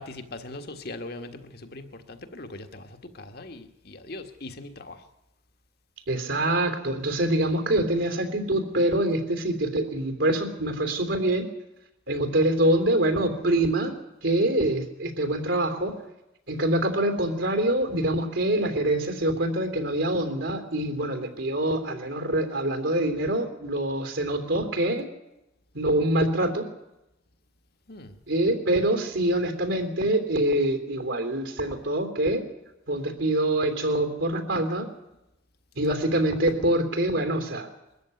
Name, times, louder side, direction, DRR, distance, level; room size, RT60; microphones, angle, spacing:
voice 1, 0.0-5.0 27.9-28.1, left 2 dB, 50° left, 7 dB, 1.5 m, -40 dB
voice 2, 6.1-11.5 12.1-13.9 14.2-15.9 16.5-25.0 25.7-26.6 28.3-32.4 32.9-34.9 35.7-37.7, right 1 dB, 75° right, 6 dB, 3.3 m, -25 dB
22.0 x 14.0 x 9.6 m, 0.91 s
head